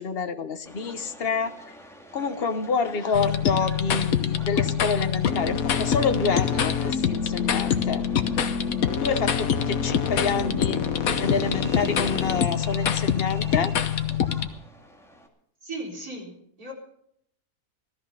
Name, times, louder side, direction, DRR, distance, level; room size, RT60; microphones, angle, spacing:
voice 1, 0.0-1.5 2.1-8.0 9.0-10.8 11.2-13.7, left 5 dB, 45° left, 9 dB, 1.1 m, -27 dB
Subway metro underground, 0.7-15.3, right 1 dB, ahead, 2.0 m, -46 dB
sound 1, 3.1-14.5, left 8 dB, 70° left, 1.4 m, -25 dB
voice 2, 15.6-16.3 16.6-16.7, right 2 dB, 75° right, -2 dB, 4.7 m, -35 dB
17.5 x 13.0 x 5.6 m, 0.71 s
omnidirectional pair, 1.6 m